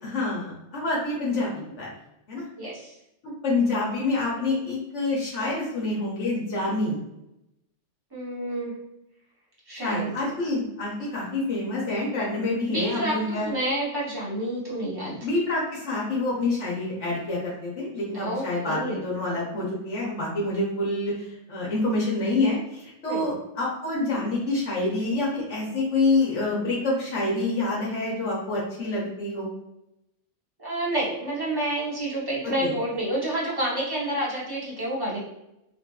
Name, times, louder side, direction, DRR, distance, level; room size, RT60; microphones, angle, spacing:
voice 1, 0.0-1.9 2.3-2.5 3.4-7.0 9.8-13.5 15.2-29.5 32.6-32.7, left 2 dB, 75° left, -5 dB, 1.2 m, -27 dB
voice 2, 2.6-2.9 8.1-8.8 9.7-10.1 12.7-15.2 18.1-19.0 23.1-23.3 30.6-35.2, right 1 dB, 20° right, -7 dB, 0.9 m, -29 dB
2.9 x 2.5 x 2.3 m, 0.87 s
omnidirectional pair, 1.3 m